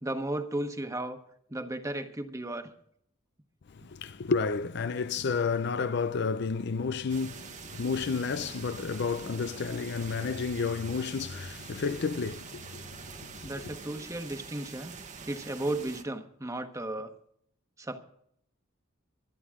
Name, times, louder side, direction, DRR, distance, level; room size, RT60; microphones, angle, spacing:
voice 1, 0.0-1.2 1.5-2.7 13.4-14.9 15.3-17.1 17.8-18.0, right 1 dB, 15° right, 1.2 m, -34 dB
voice 2, 3.7-13.7, left 5 dB, 55° left, 0.5 m, -31 dB
sound 1, 7.1-16.0, right 5 dB, 35° right, 1.2 m, -45 dB
24.0 x 9.3 x 3.7 m
head